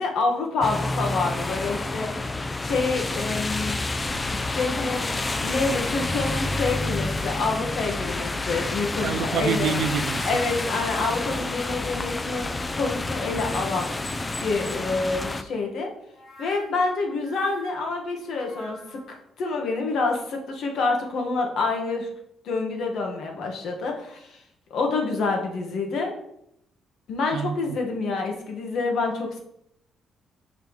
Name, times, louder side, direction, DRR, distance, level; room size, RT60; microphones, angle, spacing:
voice 1, 0.0-2.3 2.6-3.8 4.4-5.1 5.4-9.7 10.2-13.9 14.4-15.9 16.4-22.1 22.4-24.4 24.7-26.1 27.1-29.4, left 3 dB, 70° left, 2 dB, 1.3 m, -27 dB
sound 1, 0.6-15.4, left 2 dB, 25° left, 0.4 m, -29 dB
voice 2, 9.0-10.3 27.3-27.8, right 6 dB, 80° right, 12 dB, 0.4 m, -27 dB
sound 2, 16.1-19.2, right 2 dB, 50° left, 1.7 m, -47 dB
5.8 x 3.0 x 5.4 m, 0.75 s
cardioid pair, 90°, 0 cm